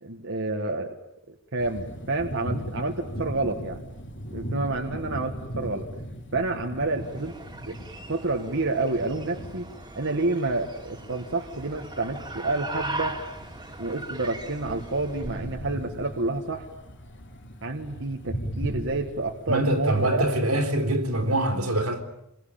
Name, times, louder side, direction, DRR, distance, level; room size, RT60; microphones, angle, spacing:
voice 1, 0.0-0.9 1.5-3.9 4.3-5.9 6.3-7.4 7.7-7.8 8.1-9.7 10.0-13.2 13.8-16.7 17.6-20.3, right 2 dB, 60° right, 1.7 m, -29 dB
sound 1, 1.6-21.3, equal, 55° left, 3.6 m, -39 dB
sound 2, 6.9-15.5, right 2 dB, 20° right, 2.8 m, -39 dB
voice 2, 19.5-22.0, right 1 dB, 85° right, 3.8 m, -24 dB
27.5 x 22.5 x 8.8 m
head